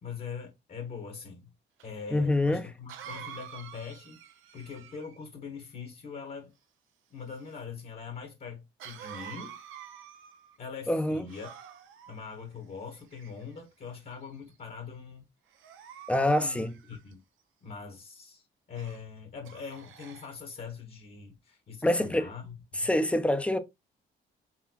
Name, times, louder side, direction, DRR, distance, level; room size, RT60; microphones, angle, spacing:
voice 1, 0.0-1.5 1.8-4.2 4.5-6.5 7.1-9.6 10.6-11.5 12.1-15.2 16.1-17.2 17.6-22.9, left 6 dB, 50° left, 1.3 m, -42 dB
Cough, 1.8-1.9 2.9-5.3 8.8-10.6 11.3-12.1 12.9-13.6 14.2-14.5 15.5-17.1 18.7-19.0 19.4-20.3, right 9 dB, 85° right, 0.7 m, -47 dB
voice 2, 2.1-2.7 10.9-11.2 16.1-16.7 21.8-22.3 22.7-23.6, left 1 dB, 5° left, 0.6 m, -26 dB
4.2 x 3.4 x 2.8 m
cardioid pair, 90°, 20 cm